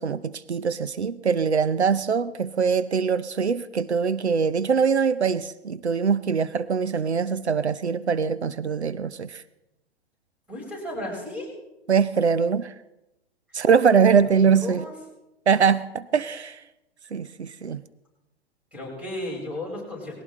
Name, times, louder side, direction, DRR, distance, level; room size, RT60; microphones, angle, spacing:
voice 1, 0.0-9.4 11.9-12.7 13.5-14.8 15.5-16.6 17.1-17.8, right 6 dB, 90° right, 14 dB, 0.7 m, -22 dB
voice 2, 10.5-11.5 14.4-14.9 18.7-20.2, left 1 dB, 5° right, -3 dB, 6.8 m, -34 dB
20.0 x 17.0 x 3.7 m, 0.95 s
figure-of-eight pair, 115°, 32 cm